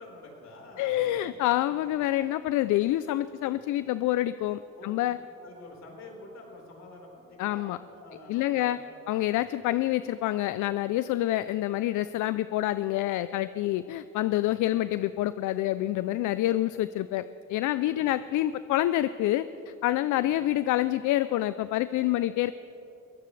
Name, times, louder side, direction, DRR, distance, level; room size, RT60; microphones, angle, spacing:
voice 1, 0.0-1.6 1.8-1.9 4.7-5.1 5.4-8.8 9.2-9.5 14.4-14.6 17.8-18.2 20.1-20.3, left 2 dB, 60° left, -1 dB, 4.5 m, -48 dB
voice 2, 0.8-5.2 7.4-7.8 8.3-8.8 9.1-22.5, left 14 dB, 80° left, 14 dB, 0.5 m, -27 dB
22.5 x 17.0 x 3.3 m, 2.9 s
cardioid pair, 90°, 30 cm